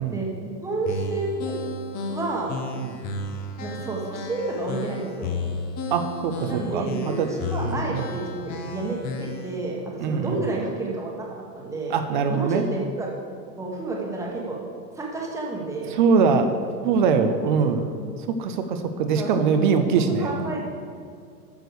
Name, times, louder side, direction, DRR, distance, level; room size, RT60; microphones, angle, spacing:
voice 1, 0.1-1.6 2.1-2.6 3.6-5.4 6.4-12.0 12.3-13.1 13.6-14.6 15.0-16.0 16.8-16.9 17.6-18.1 19.1-19.7 20.2-20.7, right 3 dB, 5° right, -2 dB, 1.2 m, -30 dB
sound 1, 0.9-9.6, left 2 dB, 20° left, 0.6 m, -33 dB
voice 2, 5.9-7.3 7.6-8.0 10.0-10.4 11.9-12.6 15.9-16.5 16.8-17.9 18.3-20.5, right 5 dB, 35° right, 8 dB, 0.5 m, -22 dB
9.2 x 6.3 x 6.8 m, 2.2 s
hypercardioid pair, 150°, 47 cm